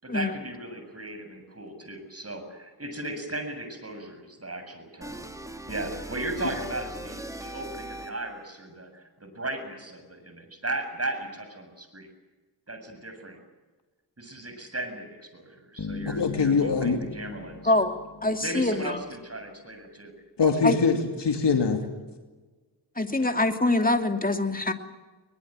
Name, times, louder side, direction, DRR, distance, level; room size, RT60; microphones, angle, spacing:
voice 1, 0.0-5.2 5.7-12.1 12.7-13.4 14.2-17.7 18.4-20.1, right 2 dB, 35° right, 7 dB, 7.6 m, -36 dB
sound 1, 5.0-8.4, right 1 dB, 10° right, 2.7 m, -39 dB
sound 2, 15.8-19.2, left 4 dB, 45° left, 2.8 m, -39 dB
voice 2, 16.1-17.0 20.4-21.8, left 5 dB, 80° left, 4 dB, 2.7 m, -23 dB
voice 3, 18.2-19.0 20.6-20.8 23.0-24.7, left 2 dB, 20° left, 6 dB, 2.8 m, -24 dB
22.5 x 21.5 x 9.0 m, 1.3 s
cardioid pair, 50°, 41 cm